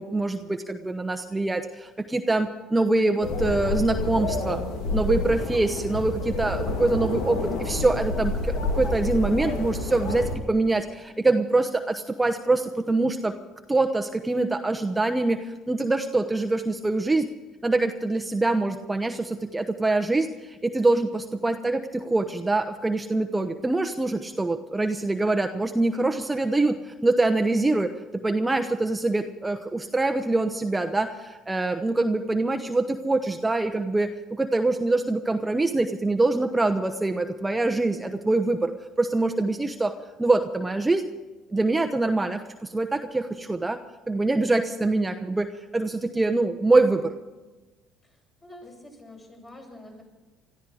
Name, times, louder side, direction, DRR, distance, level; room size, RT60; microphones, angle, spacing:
voice 1, 0.0-4.6 4.9-13.3 13.7-17.3 17.6-27.9 28.2-38.7 39.0-39.9 40.2-41.1 41.5-43.8 44.1-47.1, right 2 dB, 15° right, 6 dB, 1.0 m, -24 dB
sound 1, 3.2-10.4, left 2 dB, 80° left, 2.7 m, -28 dB
voice 2, 21.3-21.8 48.4-50.0, left 1 dB, 30° left, 0 dB, 7.5 m, -46 dB
21.0 x 13.5 x 5.0 m, 1.2 s
supercardioid pair, 75°, 0 cm